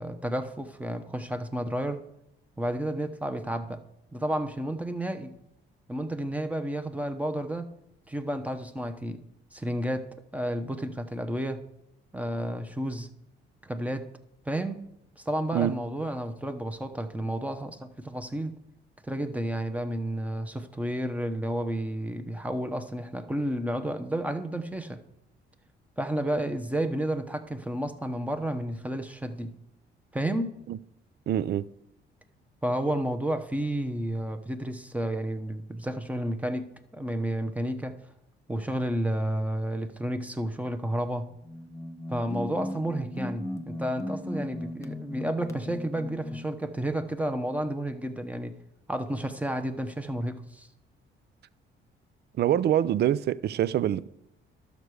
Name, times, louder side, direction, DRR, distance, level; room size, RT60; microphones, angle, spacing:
voice 1, 0.0-2.0 2.6-3.8 4.1-5.3 5.9-7.7 8.1-9.2 9.5-11.6 12.1-13.1 13.6-14.1 14.5-14.8 15.2-18.5 19.1-25.0 26.0-29.5 30.1-30.6 32.6-36.7 36.9-37.9 38.5-41.3 42.1-48.6 48.9-50.7, right 1 dB, 5° right, 0.9 m, -31 dB
voice 2, 31.3-31.7 52.4-54.1, right 11 dB, 55° right, 0.4 m, -25 dB
sound 1, 41.3-46.6, left 1 dB, 15° left, 1.2 m, -37 dB
12.0 x 6.7 x 4.8 m
cardioid pair, 90°, 20 cm